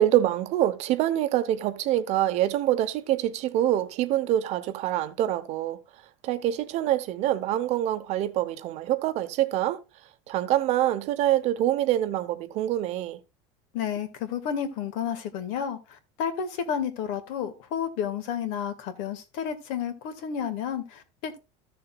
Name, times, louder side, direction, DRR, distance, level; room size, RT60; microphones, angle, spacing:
voice 1, 0.0-5.8 6.2-9.8 10.3-13.2, right 12 dB, 50° right, 0.9 m, -25 dB
voice 2, 13.7-15.8 16.2-21.4, left 8 dB, 65° left, 1.7 m, -31 dB
14.0 x 6.8 x 2.3 m
cardioid pair, 150°, 15 cm